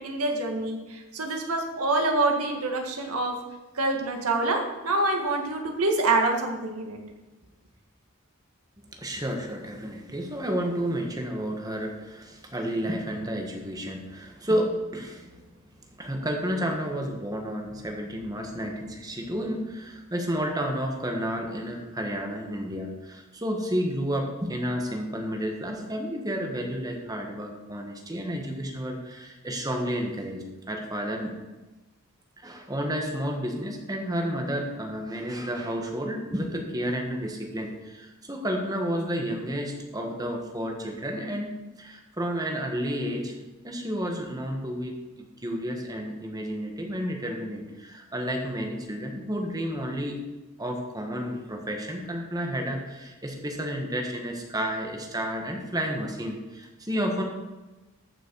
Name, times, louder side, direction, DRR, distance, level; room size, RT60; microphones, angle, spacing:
voice 1, 0.0-3.4 3.8-7.0, right 2 dB, 85° right, 2 dB, 1.9 m, -26 dB
voice 2, 8.8-15.4 16.0-31.3 32.4-41.5 41.8-43.4 43.6-50.2 50.6-57.2, equal, 15° right, 2 dB, 1.5 m, -31 dB
14.0 x 6.2 x 4.7 m, 1.1 s
head